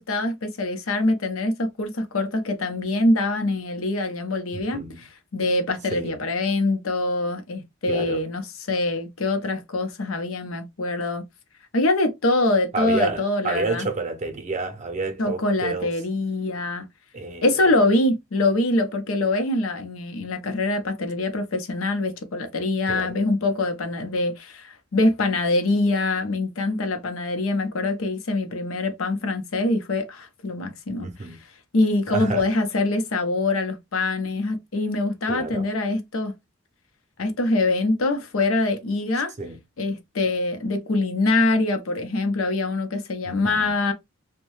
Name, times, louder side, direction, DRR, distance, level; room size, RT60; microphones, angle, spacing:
voice 1, 0.0-8.4 8.7-11.2 11.7-13.9 15.2-16.9 17.4-31.3 31.7-36.3 37.2-39.3 39.8-43.9, left 2 dB, 85° left, 0.7 m, -24 dB
voice 2, 4.5-5.0 5.9-6.1 7.9-8.2 12.7-16.0 17.1-17.7 22.8-23.1 31.0-31.4 32.1-32.5 35.3-35.7 39.4-39.6 43.3-43.7, right 3 dB, 35° right, 0.6 m, -30 dB
2.6 x 2.2 x 3.1 m
head